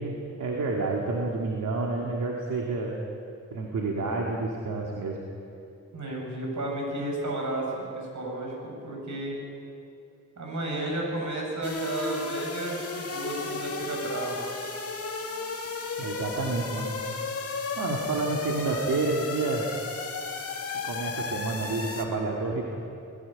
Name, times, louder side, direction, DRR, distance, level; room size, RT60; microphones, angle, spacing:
voice 1, 0.0-3.0 3.5-5.2 16.0-16.9 17.8-19.7 20.8-22.7, right 3 dB, 85° right, -1 dB, 2.2 m, -29 dB
voice 2, 5.9-9.4 10.4-14.4, right 1 dB, 65° right, -1 dB, 6.5 m, -32 dB
sound 1, 11.6-22.0, left 4 dB, 50° left, 2.1 m, -34 dB
19.5 x 16.5 x 8.8 m, 2.7 s
wide cardioid pair, 95°, 31 cm